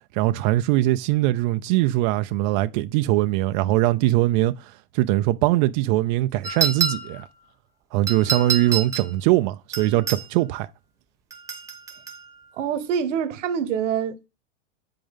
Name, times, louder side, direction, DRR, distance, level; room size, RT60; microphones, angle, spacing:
voice 1, 0.1-7.3 7.9-10.7, right 16 dB, 45° right, 0.4 m, -21 dB
sound 1, 6.4-7.3 8.1-9.1 9.7-10.3 11.3-12.2, right 6 dB, 10° right, 1.1 m, -27 dB
voice 2, 12.6-14.3, right 8 dB, 75° right, 1.0 m, -25 dB
7.5 x 5.3 x 3.6 m
hypercardioid pair, 120°, 37 cm